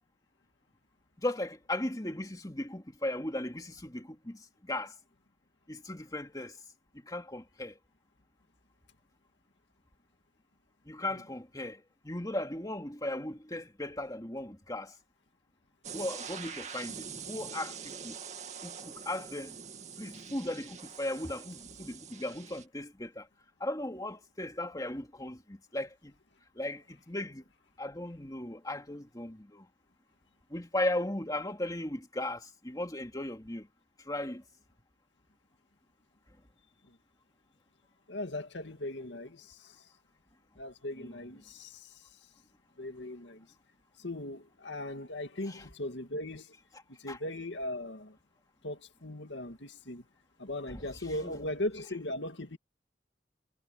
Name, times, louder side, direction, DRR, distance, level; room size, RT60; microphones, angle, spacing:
voice 1, 1.2-4.9 5.7-6.5 7.1-7.7 10.9-14.9 15.9-18.1 18.6-19.5 20.0-23.3 23.6-26.1 26.6-27.4 27.8-29.7 30.5-33.7 34.1-34.4 41.0-41.1 45.5-45.6 47.1-47.2 50.7-50.9 51.2-51.5, left 1 dB, 20° left, 2.3 m, -37 dB
sound 1, 15.8-22.6, right 6 dB, 40° right, 2.2 m, -44 dB
voice 2, 38.1-39.9 40.6-42.0 42.8-43.5 44.0-46.5 47.0-48.2 48.6-50.0 50.4-52.6, left 1 dB, 80° left, 2.1 m, -38 dB
head